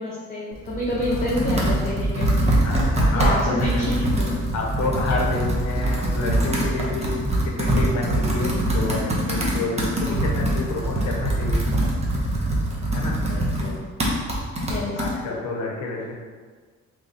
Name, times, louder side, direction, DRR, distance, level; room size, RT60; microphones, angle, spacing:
voice 1, 0.0-2.3 3.1-4.3 13.1-13.8 14.7-15.0, left 1 dB, 30° left, -6 dB, 0.7 m, -28 dB
Computer keyboard, 0.5-15.1, right 1 dB, 20° right, 0.8 m, -23 dB
voice 2, 1.1-1.8 2.6-4.0 4.5-7.1 7.4-11.6 12.8-13.2 14.9-16.1, left 3 dB, 65° left, -1 dB, 0.7 m, -29 dB
3.1 x 2.3 x 3.9 m, 1.6 s
cardioid pair, 90°, 30 cm